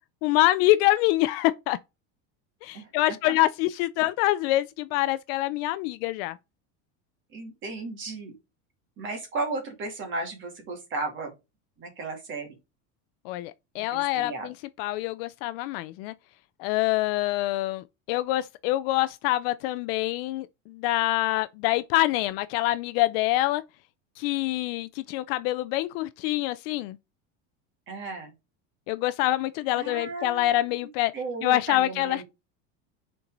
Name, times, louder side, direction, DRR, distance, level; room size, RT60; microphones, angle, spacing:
voice 1, 0.2-1.8 2.6-6.4 13.2-16.1 16.6-23.6 24.2-27.0 28.9-31.1 31.4-32.2, left 16 dB, 50° left, 0.5 m, -25 dB
voice 2, 7.3-8.3 9.0-11.3 11.8-12.6 13.9-14.5 27.9-28.3 29.7-32.2, right 3 dB, 30° right, 2.5 m, -35 dB
6.9 x 4.6 x 3.8 m
cardioid pair, 175°, 40 cm